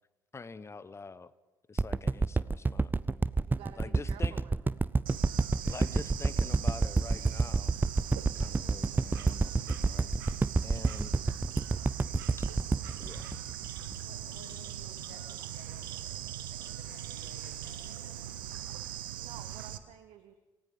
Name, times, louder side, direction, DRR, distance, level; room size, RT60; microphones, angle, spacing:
voice 1, 0.3-1.3 1.7-2.9 3.8-4.4 5.6-7.8 8.2-10.1 10.6-11.1 12.4-12.5 13.0-13.4, left 4 dB, 25° left, 17 dB, 1.0 m, -46 dB
sound 1, 1.8-14.1 14.5-14.6, right 3 dB, 15° right, 0.6 m, -28 dB
voice 2, 3.5-4.7 14.6-15.4 19.2-20.3, right 10 dB, 60° right, 10 dB, 1.2 m, -53 dB
Bird / Insect, 5.1-19.8, right 11 dB, 80° right, 0.9 m, -41 dB
voice 3, 14.0-16.2 16.5-18.6, left 4 dB, 90° left, 3 dB, 2.7 m, -56 dB
27.5 x 17.5 x 5.4 m, 1.1 s
figure-of-eight pair, 50°, 11 cm